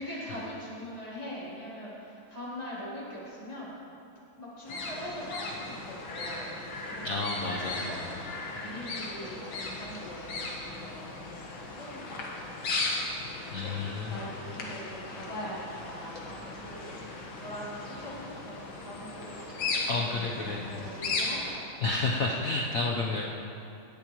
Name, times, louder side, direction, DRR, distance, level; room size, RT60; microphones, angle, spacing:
voice 1, 0.0-3.8 4.4-13.7 14.0-19.4 19.9-21.6, equal, 20° left, -8 dB, 3.4 m, -42 dB
sound 1, 4.7-21.5, left 3 dB, 80° left, 2.3 m, -37 dB
voice 2, 7.0-8.2 13.5-14.2 19.9-20.7 21.8-23.3, left 3 dB, 55° left, -2 dB, 1.1 m, -31 dB
19.0 x 12.0 x 3.1 m, 2.8 s
omnidirectional pair, 2.2 m